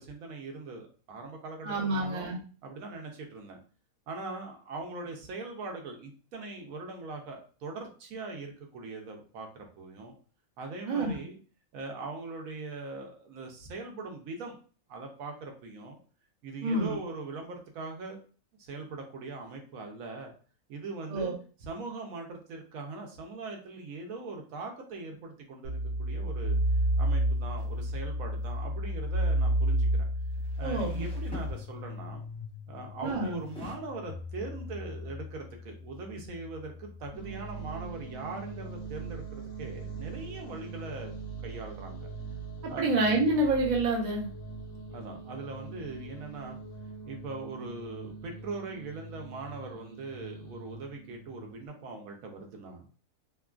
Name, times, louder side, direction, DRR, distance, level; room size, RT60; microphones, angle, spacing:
voice 1, 0.0-2.3 2.6-3.6 4.1-10.1 10.6-11.4 11.7-14.6 14.9-16.0 16.4-18.2 18.6-20.3 20.7-21.3 21.6-26.6 27.0-30.0 30.6-32.2 32.7-41.1 41.4-42.1 42.7-42.9 44.9-46.6 47.1-52.9, right 3 dB, 75° right, 2 dB, 1.0 m, -41 dB
voice 2, 1.6-2.4 10.9-11.1 16.6-17.0 21.1-21.3 30.6-31.1 33.0-33.4 42.6-44.3, right 2 dB, 45° right, -1 dB, 0.6 m, -28 dB
sound 1, 25.6-37.1, right 1 dB, 85° left, 1.1 m, -32 dB
sound 2, 27.6-27.8 30.2-32.1 33.2-33.7, left 1 dB, 10° left, 0.3 m, -47 dB
sound 3, 37.1-51.7, right 4 dB, 60° left, 0.7 m, -42 dB
2.9 x 2.4 x 2.3 m, 0.39 s
omnidirectional pair, 1.5 m